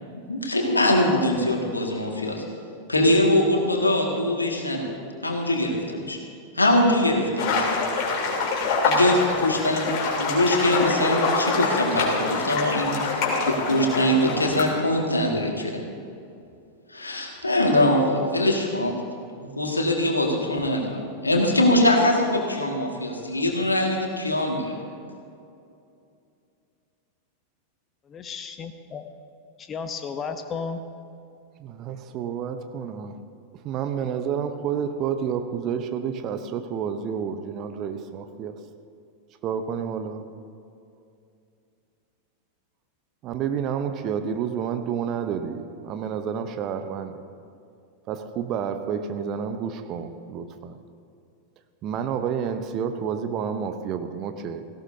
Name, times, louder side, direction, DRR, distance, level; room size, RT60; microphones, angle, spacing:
voice 1, 0.3-2.4 2.9-4.9 5.2-6.2 6.5-7.9 8.8-12.9 13.5-15.8 16.9-18.9 19.4-20.9 21.2-24.8, left 1 dB, 80° left, 2.0 m, -22 dB
sound 1, 7.4-14.7, left 3 dB, 40° left, 3.5 m, -25 dB
voice 2, 28.1-29.0 29.7-30.8, left 5 dB, 25° left, 0.8 m, -33 dB
voice 3, 31.6-33.2 33.6-38.6 39.4-40.3 43.2-47.3 48.1-50.7 51.8-54.7, right 7 dB, 35° right, 0.8 m, -30 dB
17.5 x 17.0 x 2.8 m
figure-of-eight pair, 90°, 0 cm